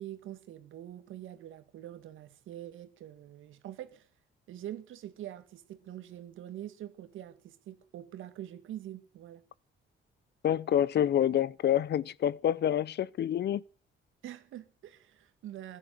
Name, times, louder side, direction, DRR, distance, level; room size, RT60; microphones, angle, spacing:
voice 1, 0.0-4.1 4.5-9.4 14.2-15.8, right 12 dB, 80° right, 2.1 m, -45 dB
voice 2, 10.4-13.6, left 10 dB, 60° left, 0.7 m, -27 dB
16.0 x 10.5 x 7.7 m
cardioid pair, 90°, 20 cm